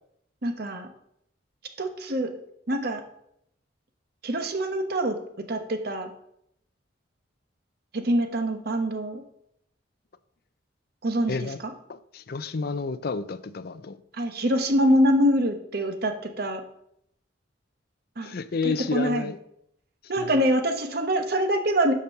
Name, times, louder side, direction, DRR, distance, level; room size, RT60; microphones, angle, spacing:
voice 1, 0.4-0.9 1.8-2.3 2.7-3.0 4.2-5.2 5.5-6.1 7.9-9.2 11.0-11.7 14.1-16.6 18.2-18.4 18.6-19.3 20.1-21.9, equal, 55° right, 1.1 m, -25 dB
voice 2, 11.3-11.6 11.9-14.0 18.2-19.4 20.2-20.3, left 4 dB, 50° left, 0.5 m, -30 dB
6.6 x 5.4 x 6.6 m
head